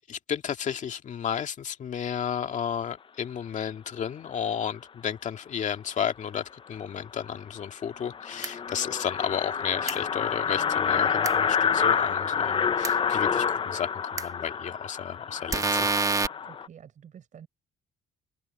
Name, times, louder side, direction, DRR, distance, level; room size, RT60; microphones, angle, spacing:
voice 1, 0.1-16.0, left 8 dB, 45° left, 2.0 m, -33 dB
sound 1, 6.7-6.8 7.2-7.3 7.6-7.7 7.9-16.7, left 7 dB, 30° left, 0.7 m, -28 dB
sound 2, 8.4-8.5 9.9-10.0 11.2-11.3 12.8-12.9 14.2-14.3 15.5-16.3, right 4 dB, 20° right, 1.0 m, -26 dB
voice 2, 16.4-17.5, right 8 dB, 50° right, 6.1 m, -49 dB
open air
cardioid pair, 110°, 17 cm